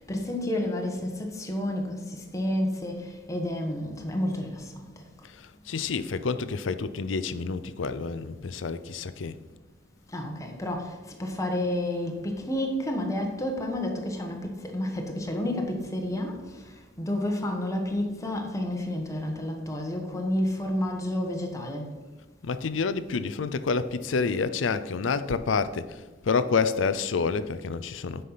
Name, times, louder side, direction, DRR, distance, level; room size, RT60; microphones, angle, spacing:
voice 1, 0.0-5.3 10.1-21.9, left 1 dB, 15° left, 1.3 m, -30 dB
voice 2, 5.3-9.4 22.4-28.2, left 5 dB, 80° left, 0.5 m, -28 dB
8.4 x 5.7 x 5.7 m
head